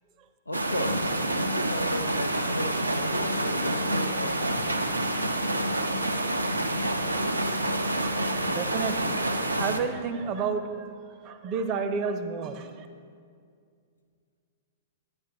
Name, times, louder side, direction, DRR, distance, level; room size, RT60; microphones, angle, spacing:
voice 1, 0.5-4.8, left 1 dB, 90° left, 7 dB, 0.5 m, -35 dB
sound 1, 0.5-9.8, right 1 dB, 90° right, 0.5 m, -28 dB
voice 2, 8.0-11.0 11.2-12.9, right 5 dB, 35° right, 9 dB, 0.6 m, -31 dB
9.8 x 9.3 x 3.0 m, 2.2 s
figure-of-eight pair, 105°, 0 cm